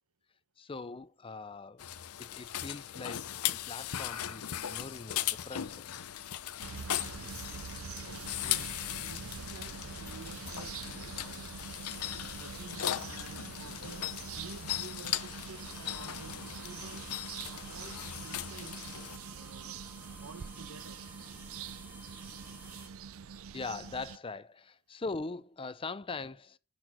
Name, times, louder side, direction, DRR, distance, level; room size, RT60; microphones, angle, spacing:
voice 1, 0.6-1.9 2.2-6.0 23.3-26.6, left 3 dB, 25° left, 0.5 m, -42 dB
sound 1, 1.8-19.2, left 11 dB, 85° left, 0.6 m, -38 dB
sound 2, 6.6-24.2, right 6 dB, 65° right, 0.5 m, -45 dB
voice 2, 8.4-10.8 11.2-11.5 12.4-17.1 17.5-18.8 19.3-19.8 20.2-21.0, right 4 dB, 85° right, 1.0 m, -51 dB
sound 3, 15.5-22.9, right 1 dB, 10° right, 1.9 m, -52 dB
10.5 x 4.4 x 6.1 m
head